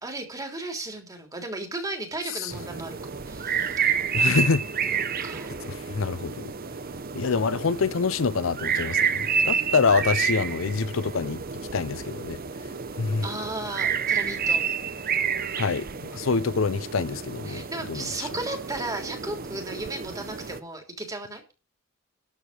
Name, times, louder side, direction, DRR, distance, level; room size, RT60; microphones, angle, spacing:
voice 1, 0.0-3.0 3.3-3.8 4.9-5.5 13.2-14.6 17.5-21.4, right 2 dB, 15° right, 3.2 m, -35 dB
sound 1, 2.5-20.6, right 6 dB, 45° right, 0.9 m, -29 dB
voice 2, 4.1-4.7 5.7-6.5 7.1-11.4 11.7-12.4 13.0-13.2 15.6-15.9 16.1-18.3, left 4 dB, 70° left, 0.6 m, -26 dB
13.0 x 4.9 x 8.7 m
head